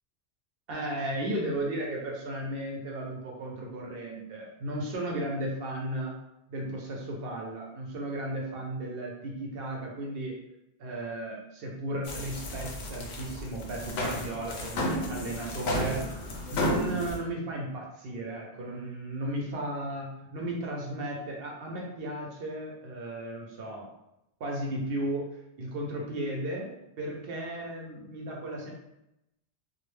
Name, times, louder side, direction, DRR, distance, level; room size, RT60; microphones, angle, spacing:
voice 1, 0.7-6.1 6.5-10.4 10.8-16.0 16.5-23.9 24.4-28.7, right 1 dB, 65° right, -1 dB, 0.7 m, -35 dB
sound 1, 12.0-17.2, left 1 dB, 70° left, 0.8 m, -33 dB
2.4 x 2.0 x 3.1 m, 0.88 s
omnidirectional pair, 1.1 m